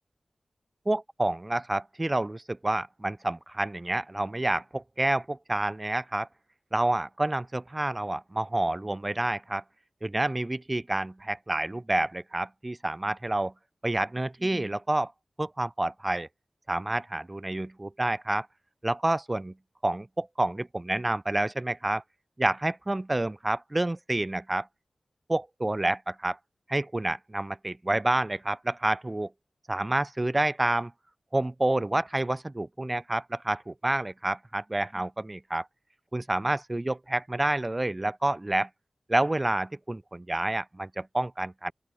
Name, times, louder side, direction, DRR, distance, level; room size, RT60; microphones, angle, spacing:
voice 1, 0.9-6.3 6.7-9.6 10.0-13.5 13.8-15.1 15.4-16.3 16.7-18.5 18.8-19.5 19.8-22.0 22.4-24.7 25.3-26.4 26.7-29.3 29.7-30.9 31.3-35.7 36.1-38.7 39.1-41.7, right 1 dB, 25° right, 1.0 m, -28 dB
open air
wide cardioid pair, 60°, 0 cm